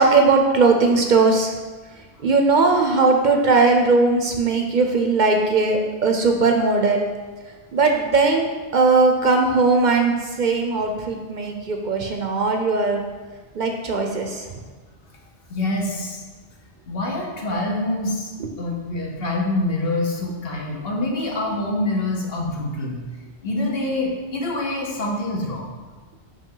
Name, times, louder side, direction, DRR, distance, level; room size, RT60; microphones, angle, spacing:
voice 1, 0.0-1.5 2.2-7.1 7.7-13.0 13.5-14.5, right 3 dB, 55° right, 3 dB, 0.6 m, -19 dB
voice 2, 15.5-16.2 16.9-23.0 23.4-25.7, left 2 dB, 65° left, -1 dB, 1.2 m, -26 dB
5.4 x 5.1 x 3.8 m, 1.3 s
omnidirectional pair, 1.0 m